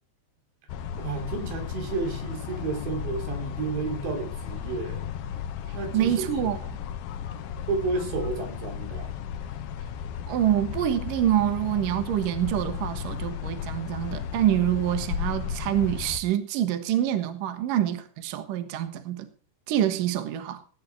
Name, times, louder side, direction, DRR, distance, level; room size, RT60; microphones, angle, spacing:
sound 1, 0.7-16.2, left 8 dB, 70° left, 2.6 m, -34 dB
voice 1, 1.0-5.1 5.7-6.6 7.7-9.1, right 4 dB, 80° right, 5.1 m, -31 dB
voice 2, 5.9-6.6 10.3-19.3 19.7-20.6, right 11 dB, 60° right, 2.6 m, -26 dB
17.5 x 9.7 x 4.5 m
omnidirectional pair, 5.1 m